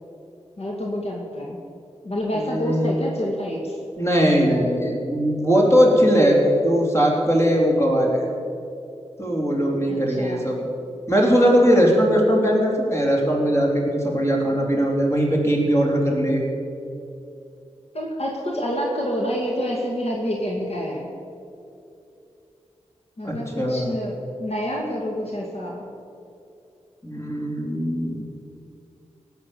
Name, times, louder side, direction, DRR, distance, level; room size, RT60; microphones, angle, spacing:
voice 1, 0.6-1.6 2.0-3.8 9.9-10.5 17.9-21.1 23.2-25.9, equal, 60° left, -1 dB, 2.2 m, -28 dB
voice 2, 2.3-2.9 4.0-8.2 9.2-10.6 11.1-16.4 23.2-23.9 27.0-28.2, equal, 25° left, -1 dB, 3.5 m, -20 dB
18.5 x 8.8 x 7.0 m, 2.6 s
wide cardioid pair, 95°, 12 cm